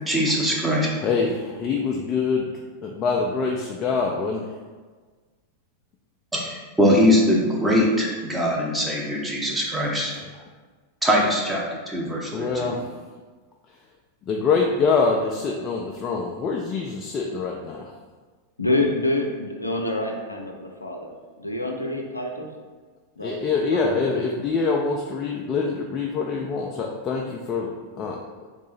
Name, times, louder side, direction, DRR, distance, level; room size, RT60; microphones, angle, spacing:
voice 1, 0.1-0.9 6.3-10.1 11.0-12.5, equal, 5° right, -4 dB, 0.8 m, -22 dB
voice 2, 1.0-4.6 10.2-10.4 12.3-12.9 14.3-17.9 23.2-28.2, left 4 dB, 30° left, 0 dB, 0.4 m, -25 dB
voice 3, 12.4-12.8 18.6-21.1 21.4-22.5 23.2-23.3 23.7-24.4, left 2 dB, 85° left, 1 dB, 0.5 m, -27 dB
3.6 x 2.7 x 4.1 m, 1.4 s
figure-of-eight pair, 90°, 0 cm